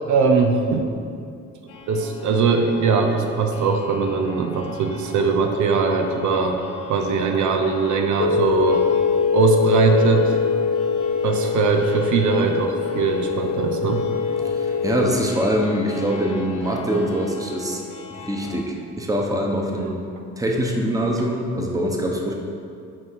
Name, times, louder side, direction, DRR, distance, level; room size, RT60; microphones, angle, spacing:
voice 1, 0.1-0.9 1.9-6.6 6.8-8.8 9.3-10.4 11.2-14.0 19.8-19.9, right 5 dB, 75° right, 3 dB, 0.7 m, -21 dB
sound 1, 1.7-18.6, left 6 dB, 90° left, 0.8 m, -40 dB
sound 2, 8.2-15.1, left 6 dB, 50° left, 0.6 m, -22 dB
voice 2, 14.4-17.8 18.2-20.0 20.4-22.3, equal, 10° right, 0 dB, 1.0 m, -23 dB
6.2 x 4.6 x 6.3 m, 2.5 s
cardioid pair, 90°, 30 cm